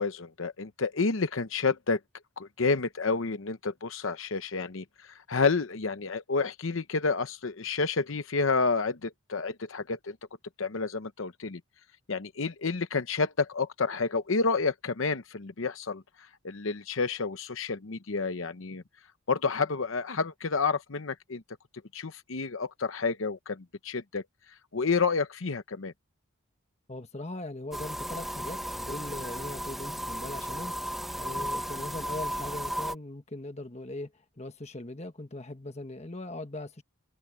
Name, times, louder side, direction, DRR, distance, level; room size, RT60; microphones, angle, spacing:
voice 1, 0.0-2.0 2.4-10.2 10.6-11.6 12.1-16.0 16.4-18.8 19.3-21.4 21.9-24.2 24.7-25.9 31.3-31.5, left 4 dB, 65° left, 0.8 m, -30 dB
voice 2, 26.9-34.1 34.4-36.8, left 2 dB, 30° left, 1.3 m, -40 dB
sound 1, 27.7-33.0, equal, ahead, 1.0 m, -35 dB
open air
head